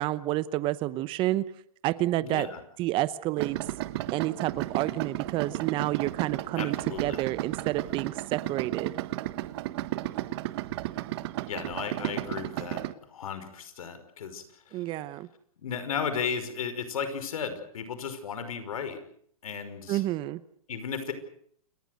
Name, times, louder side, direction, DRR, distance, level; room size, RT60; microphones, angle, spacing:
voice 1, 0.0-1.5 1.8-2.5 2.8-3.6 4.1-8.9 14.7-15.3 19.9-20.4, right 16 dB, 30° right, 17 dB, 0.9 m, -29 dB
voice 2, 2.2-2.6 6.6-7.2 11.5-12.8 13.1-14.4 15.6-19.0 19.4-20.0 20.7-21.1, left 6 dB, 75° left, 11 dB, 5.4 m, -34 dB
Idling, 3.4-12.9, right 16 dB, 45° right, 1.3 m, -33 dB
29.0 x 20.0 x 6.6 m, 0.64 s
hypercardioid pair, 140°, 18 cm